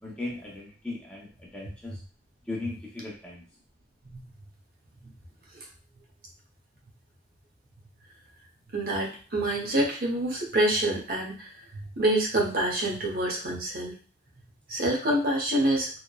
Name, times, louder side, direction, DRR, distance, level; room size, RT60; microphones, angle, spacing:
voice 1, 0.0-2.0 2.5-3.4, left 2 dB, 5° left, -4 dB, 0.6 m, -37 dB
voice 2, 8.7-11.5 12.0-13.9 14.7-15.9, right 1 dB, 60° right, -1 dB, 0.7 m, -26 dB
3.0 x 2.0 x 2.2 m, 0.39 s
head